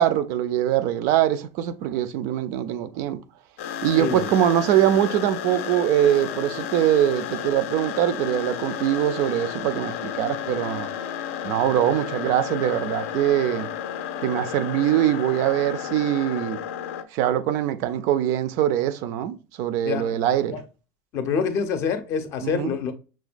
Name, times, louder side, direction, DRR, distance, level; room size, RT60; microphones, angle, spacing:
voice 1, 0.0-3.2 3.8-10.9 11.4-13.7 14.2-16.6 17.1-20.6 22.4-22.7, right 11 dB, 50° right, 0.3 m, -23 dB
sound 1, 3.6-17.0, left 9 dB, 85° left, 0.5 m, -32 dB
voice 2, 4.0-4.3 19.8-20.2 20.5-20.6 21.1-22.9, left 6 dB, 40° left, 0.6 m, -26 dB
5.9 x 2.2 x 2.4 m
cardioid pair, 165°, 7 cm